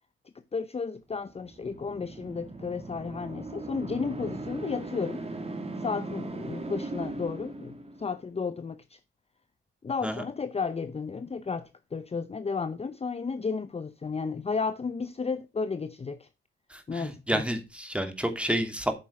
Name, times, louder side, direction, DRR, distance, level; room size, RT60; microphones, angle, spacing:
voice 1, 0.5-5.2 5.8-9.0 9.8-16.3 16.9-17.4, left 5 dB, 30° left, 0.6 m, -33 dB
sound 1, 1.3-8.3, right 2 dB, 30° right, 2.0 m, -38 dB
voice 2, 16.7-18.9, equal, 5° right, 2.4 m, -30 dB
8.6 x 6.0 x 5.9 m
cardioid pair, 75°, 21 cm